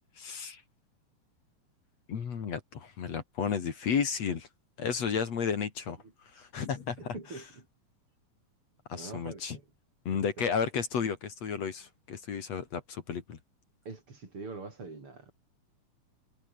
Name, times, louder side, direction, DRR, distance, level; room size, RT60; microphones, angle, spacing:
voice 1, 0.2-0.6 2.1-4.5 4.8-6.0 6.3-7.1 8.9-9.6 10.0-13.4, left 6 dB, 55° left, 3.3 m, -32 dB
voice 2, 7.0-7.7 8.9-9.6 10.1-10.2 13.8-15.3, right 3 dB, 40° right, 4.9 m, -44 dB
omnidirectional pair, 3.7 m